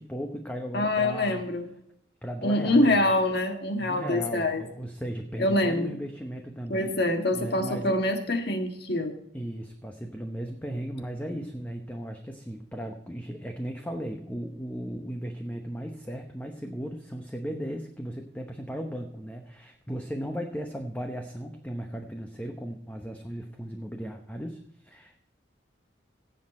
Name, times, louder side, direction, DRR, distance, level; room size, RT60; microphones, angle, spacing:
voice 1, 0.0-1.4 2.2-3.2 3.8-7.0 7.3-8.0 9.3-25.2, equal, 10° left, 4 dB, 0.9 m, -36 dB
voice 2, 0.7-1.6 2.4-4.6 5.4-5.9 6.7-9.2, left 1 dB, 60° left, 5 dB, 1.7 m, -25 dB
17.0 x 7.6 x 4.3 m, 0.72 s
head